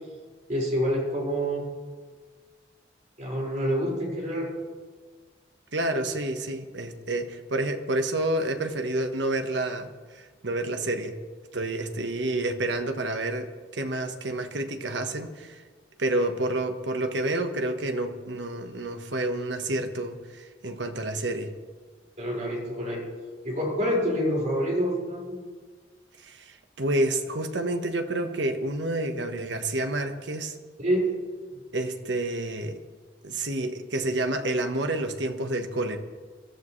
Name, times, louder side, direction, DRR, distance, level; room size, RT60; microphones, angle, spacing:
voice 1, 0.5-1.6 3.2-4.5 11.5-11.6 22.2-23.1 23.4-25.4 30.8-31.2, equal, 40° right, -3 dB, 5.5 m, -27 dB
voice 2, 5.7-11.1 11.5-15.6 16.0-21.5 26.2-30.5 31.7-32.8 33.2-36.0, right 1 dB, 75° right, 6 dB, 1.4 m, -29 dB
24.0 x 13.5 x 3.3 m, 1.4 s
head